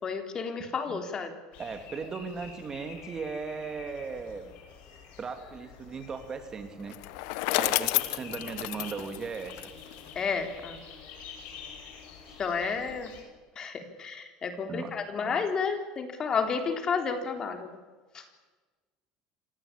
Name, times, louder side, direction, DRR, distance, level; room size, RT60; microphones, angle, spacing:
voice 1, 0.0-1.3 10.2-10.8 12.4-13.1 13.6-17.7 18.1-18.2, left 5 dB, 30° left, 6 dB, 3.9 m, -31 dB
sound 1, 1.5-13.2, left 6 dB, 60° left, 7.8 m, -48 dB
voice 2, 1.6-4.5 5.2-7.0 7.6-9.7 12.3-12.4 14.7-15.0, right 5 dB, 25° right, 8 dB, 2.8 m, -37 dB
Bicycle, 6.9-10.1, left 19 dB, 80° left, 1.2 m, -30 dB
26.0 x 19.0 x 8.6 m, 1.3 s
supercardioid pair, 125°, 2 cm